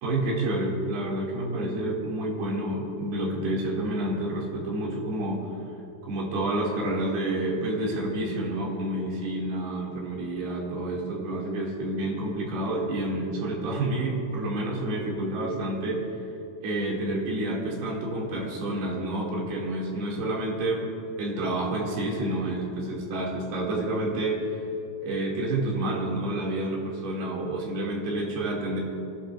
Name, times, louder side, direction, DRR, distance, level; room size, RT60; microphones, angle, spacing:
voice 1, 0.0-5.5 6.0-16.1 16.6-20.8 21.2-24.6 25.0-28.8, right 1 dB, 70° right, -4 dB, 4.1 m, -29 dB
28.5 x 11.5 x 2.4 m, 2.9 s
omnidirectional pair, 4.8 m